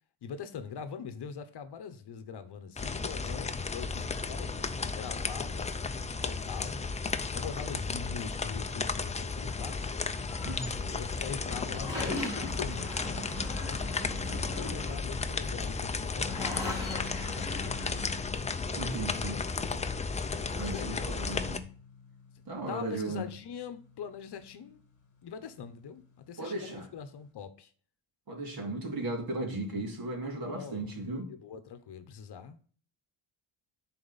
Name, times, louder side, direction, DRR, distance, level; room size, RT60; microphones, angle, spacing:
voice 1, 0.2-5.7 6.2-6.9 7.3-9.9 10.8-13.2 13.6-18.5 19.2-20.0 20.6-21.4 22.6-24.8 25.2-27.7 30.4-30.9 31.3-32.6, left 7 dB, 55° left, 1.0 m, -43 dB
sound 1, 2.8-21.6, left 4 dB, 15° left, 0.4 m, -34 dB
sound 2, 10.2-18.0, left 1 dB, 10° right, 2.7 m, -40 dB
sound 3, 16.2-26.7, left 5 dB, 40° left, 1.5 m, -48 dB
voice 2, 18.8-19.4 20.5-21.7 22.5-23.3 26.4-26.9 28.3-31.3, right 2 dB, 45° right, 2.6 m, -36 dB
10.5 x 4.3 x 4.1 m
cardioid pair, 160°, 48 cm